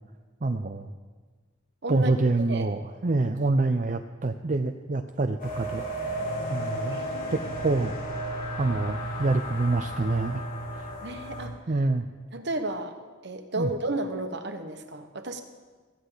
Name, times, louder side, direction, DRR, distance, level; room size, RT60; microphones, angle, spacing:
voice 1, 0.4-0.9 1.9-6.2 6.5-7.0 7.3-8.0 8.6-10.4 10.7-10.9 11.7-12.1 13.6-13.7, right 2 dB, 40° right, 6 dB, 0.5 m, -26 dB
voice 2, 2.4-2.7 6.9-7.8 11.0-11.6 12.3-13.0 13.2-15.4, right 2 dB, 60° right, 7 dB, 1.2 m, -33 dB
sound 1, 5.4-11.5, right 1 dB, 45° left, 3.5 m, -33 dB
16.5 x 14.5 x 4.0 m, 1.4 s
head